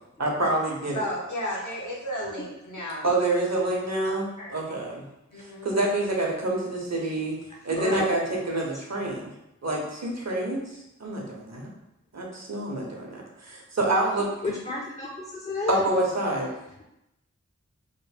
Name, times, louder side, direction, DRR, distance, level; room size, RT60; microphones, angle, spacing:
voice 1, 0.2-1.0 3.0-5.0 5.4-7.4 7.6-9.3 9.6-11.7 12.1-14.3 15.7-16.5, right 2 dB, 65° right, -1 dB, 0.9 m, -27 dB
voice 2, 0.9-3.1 4.0-4.7 5.3-5.7, equal, 90° left, -4 dB, 1.0 m, -34 dB
voice 3, 7.5-8.1 8.9-9.1 14.4-15.8, left 3 dB, 25° left, -1 dB, 0.4 m, -32 dB
3.2 x 2.1 x 4.1 m, 0.86 s
wide cardioid pair, 55°, 29 cm